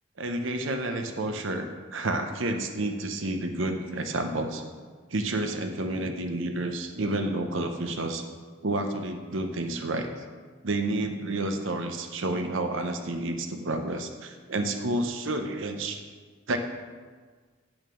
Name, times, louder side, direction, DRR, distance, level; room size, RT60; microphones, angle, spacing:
voice 1, 0.2-4.6 5.1-8.2 8.6-10.1 10.6-16.0 16.5-16.6, right 2 dB, 70° right, 5 dB, 0.8 m, -30 dB
8.8 x 6.2 x 6.3 m, 1.5 s
head